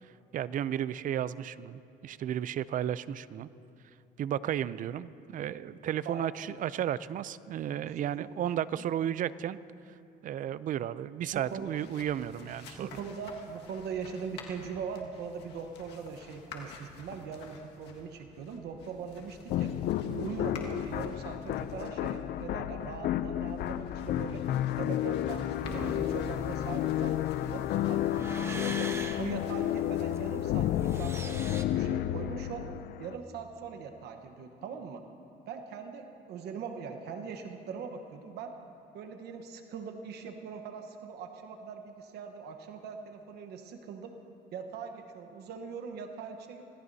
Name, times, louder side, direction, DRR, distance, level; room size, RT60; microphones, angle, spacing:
voice 1, 0.0-3.5 4.2-9.6 10.2-12.9, right 10 dB, 50° right, 17 dB, 0.5 m, -33 dB
sound 1, 11.3-31.2, left 5 dB, 85° left, 1.8 m, -51 dB
voice 2, 11.3-11.7 12.8-19.7 20.1-24.4 24.8-28.9 29.2-32.6 33.0-35.0 35.5-38.5 38.9-44.1 44.5-46.6, right 6 dB, 75° right, 5 dB, 1.1 m, -41 dB
sound 2, 19.5-33.2, left 12 dB, 65° left, 0.5 m, -31 dB
sound 3, 25.6-31.6, right 2 dB, 15° right, 1.0 m, -42 dB
25.5 x 17.5 x 2.8 m, 2.6 s
cardioid pair, 110°, 17 cm